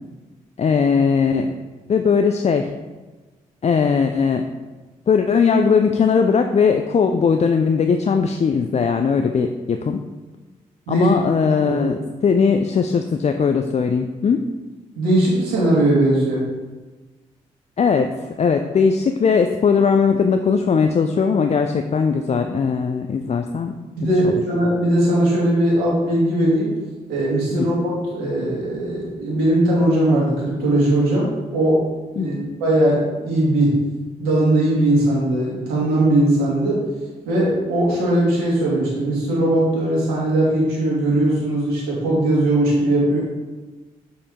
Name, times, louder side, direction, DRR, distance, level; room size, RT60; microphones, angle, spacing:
voice 1, 0.6-1.5 1.9-2.7 3.6-4.5 5.1-10.0 10.9-14.5 17.8-24.3 27.5-27.7 32.2-32.5, left 5 dB, 45° left, 6 dB, 0.5 m, -19 dB
voice 2, 15.0-16.4 24.0-26.7 27.1-31.9 32.1-32.3 32.6-33.8 34.2-36.8 37.3-43.2, right 1 dB, 85° right, -4 dB, 2.1 m, -19 dB
6.8 x 5.3 x 3.7 m, 1.2 s
hypercardioid pair, 45°, 16 cm